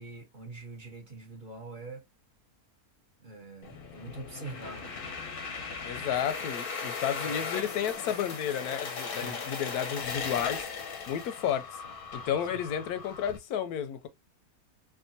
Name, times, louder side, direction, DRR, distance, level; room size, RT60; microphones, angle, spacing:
voice 1, 0.0-2.0 3.2-4.9 7.2-7.5 9.1-9.4 12.5-12.6, right 3 dB, 40° right, 0.9 m, -44 dB
sound 1, 3.6-13.4, left 5 dB, 50° left, 0.7 m, -38 dB
voice 2, 5.8-10.6 11.1-11.7 12.1-14.1, left 9 dB, 85° left, 1.1 m, -32 dB
3.6 x 2.2 x 2.6 m
omnidirectional pair, 1.6 m